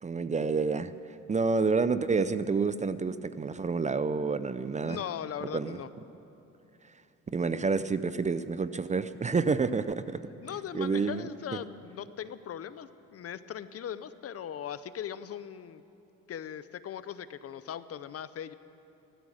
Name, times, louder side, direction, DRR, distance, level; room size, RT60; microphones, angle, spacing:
voice 1, 0.0-0.9 1.3-5.0 5.5-5.8 7.3-10.2 10.7-11.2 11.5-11.6, right 4 dB, 25° right, 14 dB, 0.5 m, -28 dB
voice 2, 4.9-5.9 10.4-15.8 16.3-18.5, left 9 dB, 50° left, 14 dB, 0.6 m, -39 dB
15.5 x 13.5 x 6.4 m, 2.8 s
cardioid pair, 90°, 30 cm